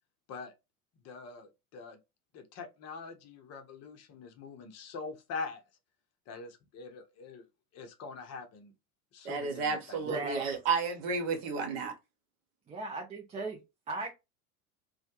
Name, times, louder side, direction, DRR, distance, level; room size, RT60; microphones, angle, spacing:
voice 1, 1.0-2.0 2.3-5.6 6.3-7.5 7.7-8.7 9.1-10.0, left 4 dB, 35° left, 0.6 m, -44 dB
voice 2, 9.2-11.9, right 5 dB, 60° right, 0.9 m, -32 dB
voice 3, 10.0-10.6 12.7-13.6 13.9-14.1, right 2 dB, 15° right, 0.3 m, -37 dB
2.1 x 2.1 x 2.8 m
hypercardioid pair, 80°, 44 cm